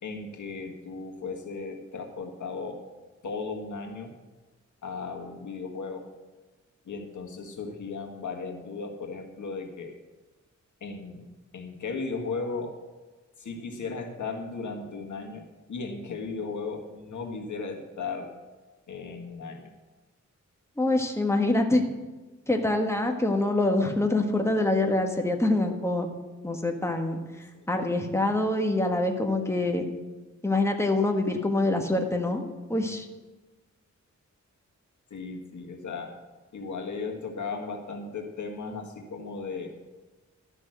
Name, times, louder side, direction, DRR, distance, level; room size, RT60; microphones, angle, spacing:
voice 1, 0.0-2.8 3.2-4.1 4.8-6.1 6.8-9.9 10.8-11.2 11.5-12.8 13.4-15.4 15.7-18.3 18.9-19.7 27.5-27.6 35.1-36.2 36.5-39.7, left 4 dB, 85° left, 3 dB, 1.7 m, -36 dB
voice 2, 20.8-21.8 22.5-26.1 26.4-27.2 27.7-29.9 30.4-32.4 32.7-33.0, left 2 dB, 10° left, 3 dB, 1.6 m, -25 dB
12.5 x 6.2 x 7.7 m, 1.2 s
wide cardioid pair, 80°, 29 cm